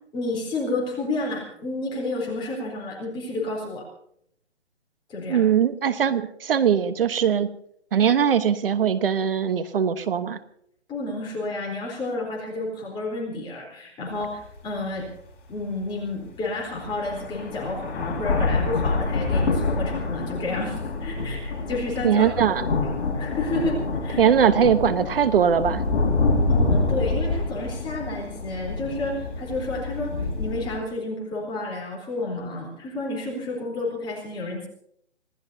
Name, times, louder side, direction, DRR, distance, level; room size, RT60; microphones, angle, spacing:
voice 1, 0.1-3.9 5.1-5.4 10.9-15.1 15.5-22.3 22.8-24.2 26.5-34.7, left 2 dB, 15° left, -2 dB, 3.9 m, -31 dB
voice 2, 5.3-7.5 7.9-10.4 22.0-22.6 24.2-25.8, right 8 dB, 50° right, 11 dB, 1.2 m, -21 dB
sound 1, 14.2-14.3 15.0-15.1 16.3-16.4 16.8-30.8, left 3 dB, 45° left, 4.9 m, -26 dB
26.0 x 17.0 x 2.8 m, 0.68 s
hypercardioid pair, 150°, 36 cm